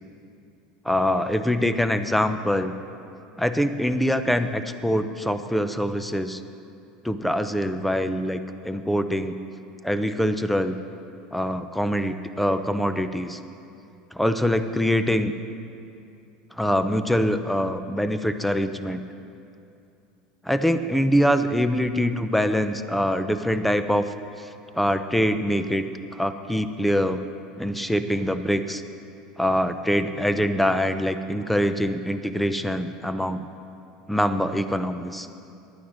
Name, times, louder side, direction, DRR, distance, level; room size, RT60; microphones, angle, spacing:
voice 1, 0.8-2.7 3.4-6.4 7.0-8.4 8.6-9.4 9.8-10.7 11.3-13.4 14.1-15.3 16.6-19.0 20.4-24.5 24.7-25.8 26.1-27.2 27.6-28.8 29.4-33.5 34.1-35.3, equal, 5° left, 10 dB, 0.6 m, -24 dB
10.5 x 9.2 x 6.2 m, 2.6 s
supercardioid pair, 100°, 3 cm